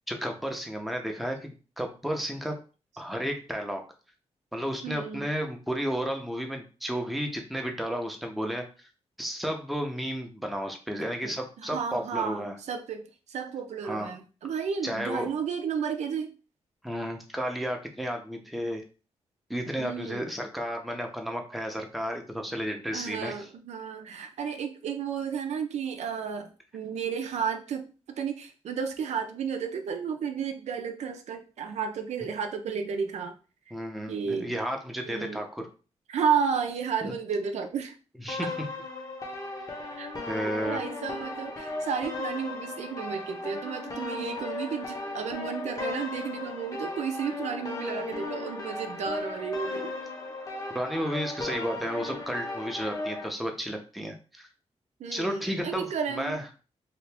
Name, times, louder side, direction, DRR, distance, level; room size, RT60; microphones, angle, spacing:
voice 1, 0.1-2.6 3.0-3.8 4.5-8.7 9.2-12.6 13.8-14.1 14.8-15.3 16.8-18.8 19.5-23.3 33.7-35.7 37.0-37.1 38.2-38.7 40.3-40.8 50.7-54.5 55.1-56.4, equal, ahead, 2 dB, 0.6 m, -32 dB
voice 2, 4.8-5.3 11.2-16.3 19.8-20.3 22.9-27.9 28.2-33.4 34.1-34.5 35.1-35.4 36.1-37.9 40.0-40.1 40.4-49.9 55.0-56.4, right 6 dB, 85° right, 6 dB, 0.5 m, -32 dB
sound 1, 38.3-53.3, left 2 dB, 30° left, 0.8 m, -36 dB
2.9 x 2.6 x 3.3 m, 0.35 s
wide cardioid pair, 105°, 11 cm